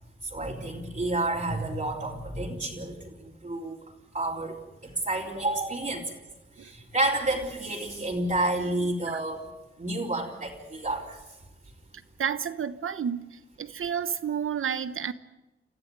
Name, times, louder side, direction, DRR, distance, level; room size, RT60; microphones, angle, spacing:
voice 1, 0.3-3.8 4.1-6.0 6.6-9.4 9.8-11.2, right 2 dB, 35° right, 4.1 m, -30 dB
voice 2, 12.2-15.1, right 7 dB, 75° right, 1.1 m, -31 dB
28.5 x 15.0 x 9.6 m
wide cardioid pair, 105°, 21 cm